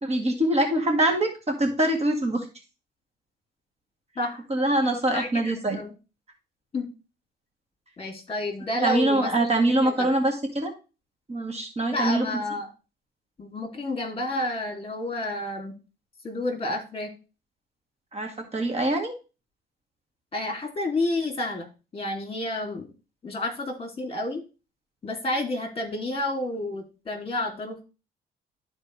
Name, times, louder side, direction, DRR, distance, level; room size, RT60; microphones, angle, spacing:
voice 1, 0.0-2.4 4.5-5.8 8.8-10.7 11.3-12.3 18.1-19.1, right 1 dB, 30° right, 3 dB, 1.8 m, -24 dB
voice 2, 5.1-5.9 6.7-6.9 8.0-10.1 11.9-12.7 13.4-15.8 16.2-17.1 20.3-21.7 21.9-22.9 23.2-24.4 25.0-27.8, left 1 dB, 30° left, 3 dB, 2.7 m, -30 dB
12.5 x 4.4 x 3.2 m, 0.30 s
cardioid pair, 90°, 20 cm